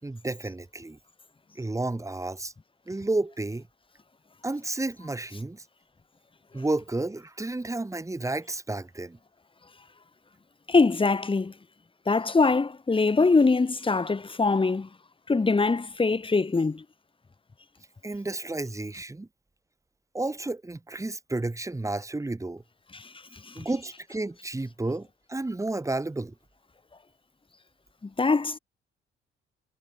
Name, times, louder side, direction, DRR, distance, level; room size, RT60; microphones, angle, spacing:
voice 1, 0.0-1.0 1.6-2.5 2.9-3.6 4.4-5.6 6.5-9.2 18.0-19.3 20.1-22.6 23.5-26.3, right 2 dB, 15° right, 5.2 m, -31 dB
voice 2, 10.7-11.5 12.1-14.9 15.3-16.8 22.9-23.0 23.6-23.7 28.2-28.6, left 3 dB, 25° left, 6.5 m, -23 dB
cardioid pair, 90°, 20 cm